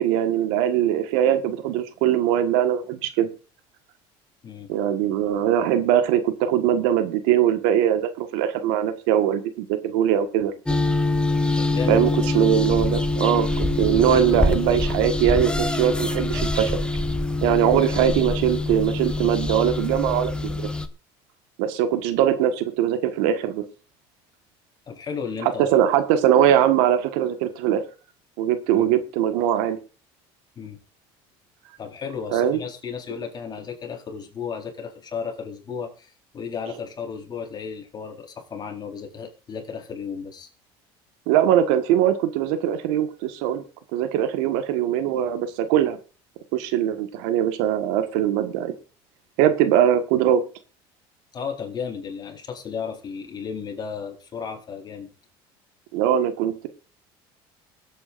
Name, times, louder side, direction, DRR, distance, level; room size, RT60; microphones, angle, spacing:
voice 1, 0.0-3.3 4.7-10.5 11.9-16.7 17.4-20.7 21.6-23.6 25.6-27.8 28.4-29.8 32.3-32.6 41.3-43.6 43.9-46.0 46.5-48.7 49.4-50.4 55.9-56.7, right 10 dB, 85° right, 9 dB, 1.5 m, -21 dB
sound 1, 10.7-20.9, left 2 dB, 10° left, 1.1 m, -24 dB
voice 2, 11.6-12.0 17.7-17.8 24.9-25.7 28.7-28.9 30.6-30.8 31.8-40.5 51.3-55.1, left 6 dB, 35° left, 2 dB, 4.1 m, -34 dB
23.0 x 8.5 x 2.6 m, 0.33 s
supercardioid pair, 100°, 12 cm